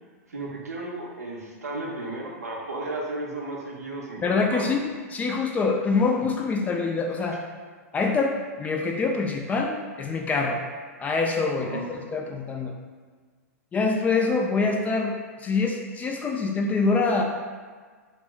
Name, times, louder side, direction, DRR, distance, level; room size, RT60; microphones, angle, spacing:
voice 1, 0.3-4.8 11.6-11.8, right 2 dB, 80° right, -2 dB, 0.6 m, -34 dB
voice 2, 4.2-7.4 7.9-10.6 11.0-12.7 13.7-17.2, left 4 dB, 20° left, 1 dB, 0.3 m, -25 dB
2.4 x 2.0 x 3.7 m, 1.5 s
figure-of-eight pair, 100°, 8 cm